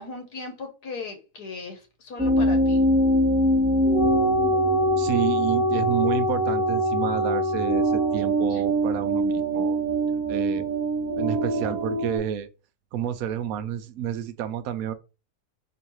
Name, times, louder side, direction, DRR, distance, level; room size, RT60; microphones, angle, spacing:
voice 1, 0.0-2.9 8.5-8.6 10.1-10.2, left 3 dB, 75° left, 1.6 m, -38 dB
sound 1, 2.2-12.2, right 1 dB, 5° right, 1.0 m, -23 dB
voice 2, 5.0-9.8 10.3-10.7 11.2-12.5 12.9-14.9, right 10 dB, 70° right, 0.9 m, -30 dB
3.9 x 3.1 x 4.4 m
omnidirectional pair, 1.7 m